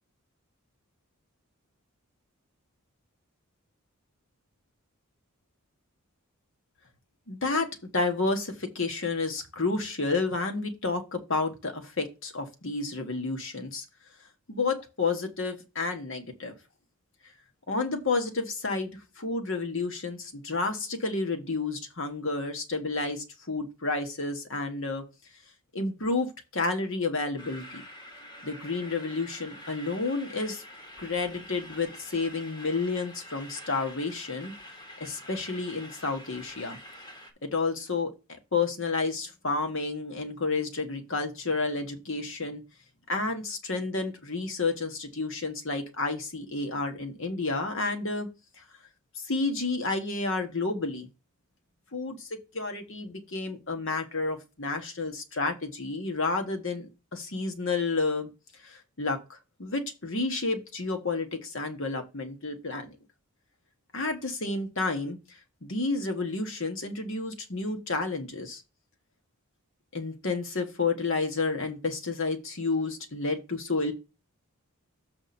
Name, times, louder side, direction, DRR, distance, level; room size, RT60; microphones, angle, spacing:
voice 1, 7.3-7.7 7.9-13.8 14.5-16.5 17.7-25.0 25.7-27.8 28.4-30.6 31.0-34.5 35.0-36.8 37.4-38.1 38.5-42.6 43.1-48.3 49.3-51.1 51.9-58.3 58.6-59.2 59.6-62.9 63.9-65.2 65.6-68.6 69.9-73.9, left 3 dB, 60° left, 1.5 m, -30 dB
sound 1, 27.4-37.3, left 1 dB, 20° left, 1.3 m, -46 dB
7.2 x 5.0 x 4.3 m
head